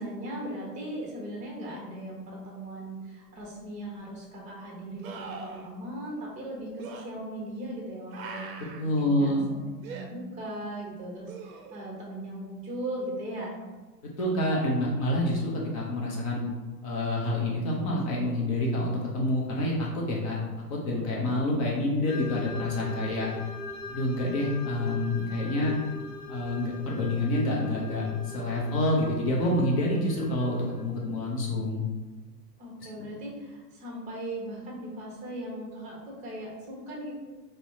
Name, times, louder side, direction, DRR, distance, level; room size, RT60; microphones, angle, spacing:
voice 1, 0.0-9.3 9.6-13.6 32.6-37.1, right 1 dB, 15° right, -3 dB, 0.8 m, -38 dB
sound 1, 3.4-3.5 5.0-5.7 6.8-7.0 8.1-8.9 9.8-10.1 11.3-11.9 15.1-15.2, right 4 dB, 55° right, 0.6 m, -41 dB
voice 2, 8.8-9.5 14.2-16.4 16.8-20.4 20.7-23.3 23.9-25.8 26.3-31.8, left 1 dB, 25° left, -3 dB, 0.4 m, -27 dB
sound 2, 22.1-31.1, left 3 dB, 85° left, 0.8 m, -42 dB
5.4 x 2.0 x 2.6 m, 1.2 s
figure-of-eight pair, 95°, 50 cm